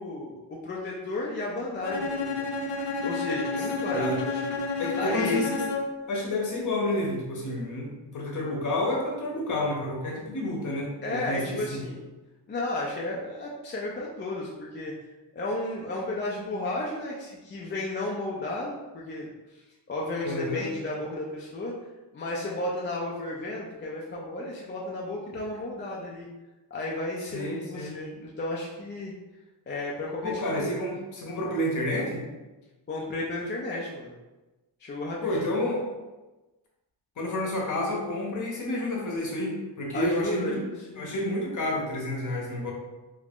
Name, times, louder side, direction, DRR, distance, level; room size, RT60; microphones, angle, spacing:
voice 1, 0.0-2.5 3.0-5.5 11.0-12.0 12.5-14.9 15.3-19.6 19.9-21.7 22.1-26.3 26.7-29.1 29.7-30.8 32.9-34.1 34.8-35.5 39.9-41.1, left 2 dB, 25° left, -4 dB, 0.4 m, -33 dB
Bowed string instrument, 1.8-6.1, left 3 dB, 85° left, 0.6 m, -30 dB
voice 2, 4.8-5.5 6.1-11.8 20.2-20.7 27.3-27.9 30.2-32.2 35.2-35.9 37.2-40.6 41.0-42.7, left 1 dB, 45° left, -1 dB, 0.8 m, -30 dB
3.1 x 2.4 x 3.4 m, 1.1 s
wide cardioid pair, 140°, 43 cm